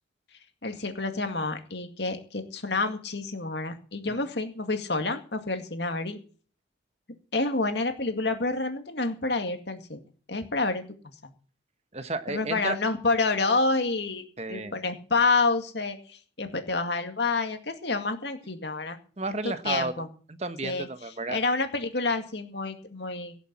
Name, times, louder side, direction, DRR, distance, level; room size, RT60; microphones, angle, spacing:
voice 1, 0.6-6.2 7.3-10.0 10.3-10.9 11.2-11.3 12.3-14.2 14.5-19.0 19.3-19.4 19.6-20.1 20.6-20.9 21.3-23.4, left 3 dB, 65° left, 6 dB, 2.2 m, -28 dB
voice 2, 11.9-12.8 14.4-14.7 19.2-19.9 20.3-21.4, right 3 dB, 35° right, 10 dB, 1.1 m, -32 dB
17.5 x 7.1 x 8.7 m, 0.42 s
head